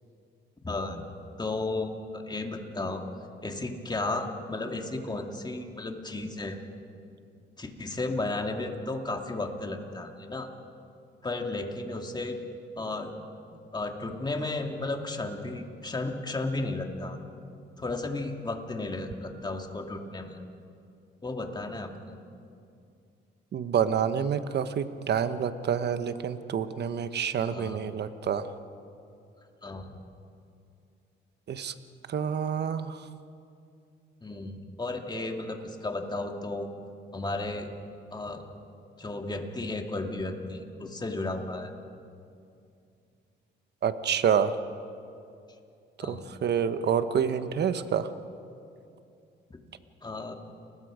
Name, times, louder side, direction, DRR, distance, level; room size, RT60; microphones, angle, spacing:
voice 1, 0.6-1.0 1.4-3.0 3.4-6.6 7.6-10.5 11.2-12.4 12.8-13.1 13.7-17.2 17.8-20.4 21.2-22.2 27.5-27.8 29.6-29.9 34.2-36.7 37.1-37.7 38.1-38.4 39.0-41.7 46.0-46.3 49.5-49.6 50.0-50.3, left 2 dB, 20° left, 3 dB, 2.5 m, -34 dB
voice 2, 23.5-28.5 31.5-31.7 32.1-33.1 43.8-44.5 46.0-48.1, right 7 dB, 60° right, 11 dB, 1.2 m, -28 dB
30.0 x 21.0 x 5.2 m, 2.5 s
cardioid pair, 90°, 20 cm